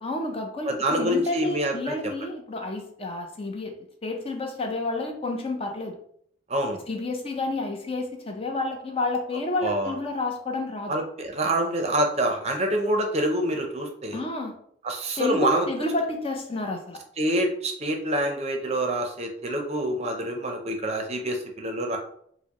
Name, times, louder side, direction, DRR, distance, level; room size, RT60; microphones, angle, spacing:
voice 1, 0.0-3.7 4.0-6.0 6.9-10.9 14.1-14.5 15.2-17.0, left 2 dB, 30° left, 3 dB, 0.6 m, -30 dB
voice 2, 0.7-2.0 6.5-6.8 9.6-9.9 10.9-14.2 14.8-15.7 17.2-22.0, right 1 dB, 35° right, 3 dB, 0.5 m, -26 dB
4.5 x 2.1 x 2.9 m, 0.65 s
head